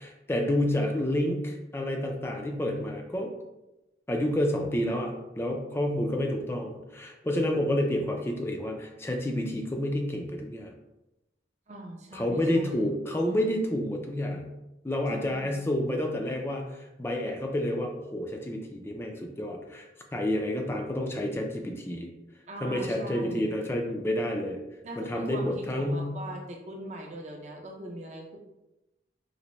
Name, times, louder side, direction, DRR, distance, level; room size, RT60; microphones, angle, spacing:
voice 1, 0.0-3.3 4.1-10.7 12.1-14.5 14.8-19.9 20.1-22.1 22.6-24.6 25.0-26.1, left 1 dB, 15° left, 2 dB, 0.3 m, -29 dB
voice 2, 11.7-12.9 15.1-15.6 22.5-23.5 24.8-28.4, right 1 dB, 40° right, 1 dB, 0.5 m, -41 dB
3.9 x 2.1 x 3.0 m, 0.95 s
head